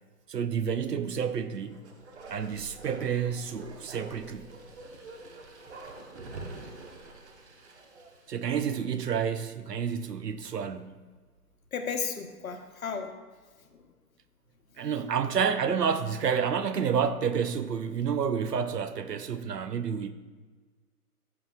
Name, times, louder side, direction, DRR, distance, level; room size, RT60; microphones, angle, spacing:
voice 1, 0.3-1.8 2.3-4.5 8.3-11.0 14.8-20.1, right 7 dB, 85° right, 0.7 m, -29 dB
Bark, 1.4-9.0 9.3-9.4, right 2 dB, 45° right, 1.0 m, -46 dB
voice 2, 11.7-13.1 13.7-13.8, left 6 dB, 60° left, 1.1 m, -34 dB
13.5 x 5.8 x 2.3 m
figure-of-eight pair, 145°, 47 cm